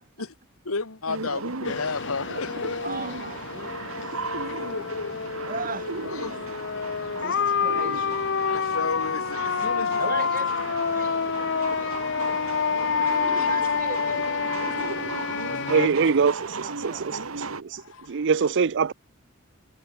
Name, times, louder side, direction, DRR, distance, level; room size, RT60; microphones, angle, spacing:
voice 1, 0.7-2.8 4.5-5.1 6.2-6.4 8.4-10.0 13.4-13.5 15.3-16.0 17.7-18.2, left 3 dB, 90° left, 1.8 m, -33 dB
sound 1, 1.1-17.6, right 4 dB, 90° right, 2.0 m, -36 dB
voice 2, 1.4-1.7 2.8-4.2 5.4-5.9 7.0-8.1 10.0-12.0 13.1-14.8 15.6-17.2, right 4 dB, 45° right, 5.2 m, -38 dB
sound 2, 1.6-15.9, left 6 dB, 60° left, 0.8 m, -28 dB
voice 3, 15.7-17.8 18.1-18.9, right 5 dB, 60° right, 0.5 m, -24 dB
head